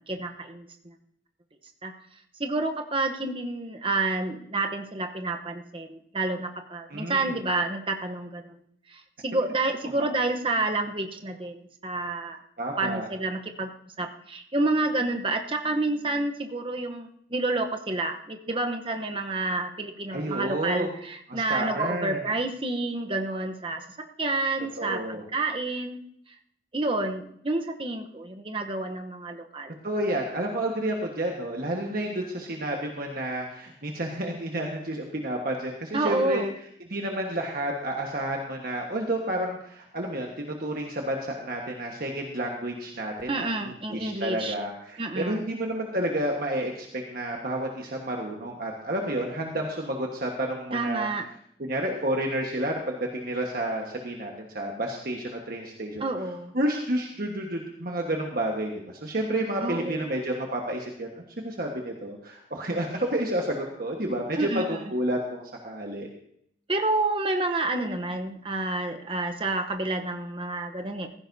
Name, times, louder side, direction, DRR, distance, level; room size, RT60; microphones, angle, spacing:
voice 1, 0.1-0.9 1.8-1.9 2.4-8.6 8.9-12.4 12.8-13.7 14.0-23.8 24.2-26.0 26.7-29.8 35.9-36.5 43.3-44.5 45.0-45.5 50.7-51.3 56.0-56.5 59.6-60.1 64.3-64.7 66.7-71.1, right 2 dB, 30° right, 5 dB, 0.9 m, -29 dB
voice 2, 6.9-7.3 12.6-13.1 20.1-20.9 21.3-22.2 24.8-25.2 29.8-36.4 36.9-51.1 51.6-56.0 56.5-66.1, right 1 dB, 50° right, 1 dB, 1.4 m, -30 dB
15.5 x 15.5 x 2.7 m, 0.70 s
head